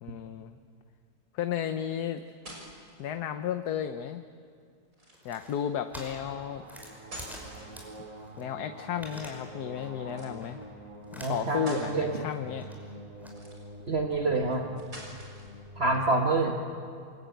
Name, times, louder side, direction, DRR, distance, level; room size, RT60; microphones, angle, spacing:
voice 1, 0.0-0.6 1.3-2.2 3.0-4.3 5.2-6.6 8.4-10.6 11.1-12.7, left 9 dB, 85° left, 8 dB, 1.4 m, -33 dB
sound 1, 2.3-3.0 4.9-5.4 6.8-8.2 10.1-10.3 11.0-11.1 11.5-11.9 13.2-13.9 14.8-15.6, right 1 dB, 60° right, 6.5 m, -46 dB
sound 2, 5.1-8.5 8.7-9.5 9.8-10.1 10.4-10.6 11.1-11.7 12.0-13.3, equal, ahead, 5.4 m, -47 dB
sound 3, 5.9-16.1, right 1 dB, 25° right, 2.4 m, -46 dB
voice 2, 11.2-12.3 13.9-14.7 15.8-16.6, right 3 dB, 45° right, 1 dB, 1.8 m, -27 dB
28.0 x 22.5 x 9.3 m, 2.2 s
omnidirectional pair, 1.6 m